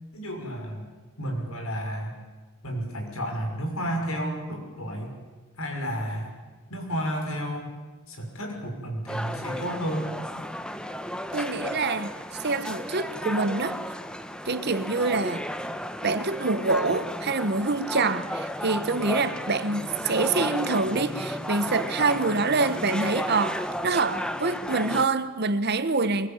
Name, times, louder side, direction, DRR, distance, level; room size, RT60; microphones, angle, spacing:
voice 1, 0.1-0.9 1.2-2.1 2.6-5.2 5.6-6.3 6.7-7.7 8.1-10.1, equal, 80° left, 6.0 m, -31 dB
sound 1, 9.1-25.1, equal, 5° left, 1.0 m, -33 dB
voice 2, 11.3-12.1 12.4-13.8 14.4-15.5 16.0-26.3, right 3 dB, 50° right, 1.2 m, -26 dB
23.0 x 21.5 x 9.0 m
head